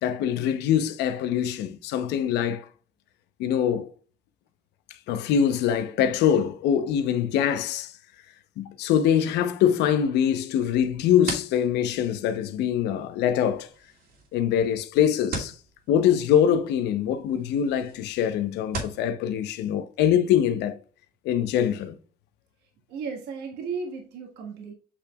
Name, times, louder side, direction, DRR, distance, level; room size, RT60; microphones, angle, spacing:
voice 1, 0.0-2.7 3.4-3.9 5.1-7.9 8.6-13.7 14.3-15.5 15.9-20.8 21.2-21.9, left 9 dB, 85° left, 0.8 m, -23 dB
sound 1, 10.7-19.0, right 4 dB, 65° right, 2.5 m, -40 dB
voice 2, 22.6-24.7, right 5 dB, 80° right, 1.6 m, -35 dB
8.2 x 5.9 x 2.4 m
cardioid pair, 110°, 17 cm